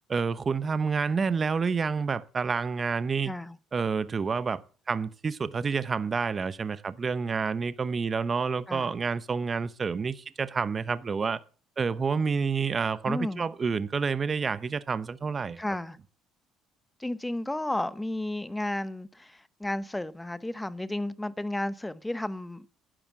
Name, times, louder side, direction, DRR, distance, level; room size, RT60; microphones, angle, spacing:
voice 1, 0.1-3.3 3.7-4.6 4.9-11.4 11.8-15.6, right 5 dB, 35° right, 0.8 m, -29 dB
voice 2, 3.2-3.6 8.7-8.9 13.1-13.4 15.6-16.0 17.0-22.7, left 1 dB, 10° left, 0.9 m, -33 dB
11.0 x 10.0 x 7.2 m
supercardioid pair, 90°, 0 cm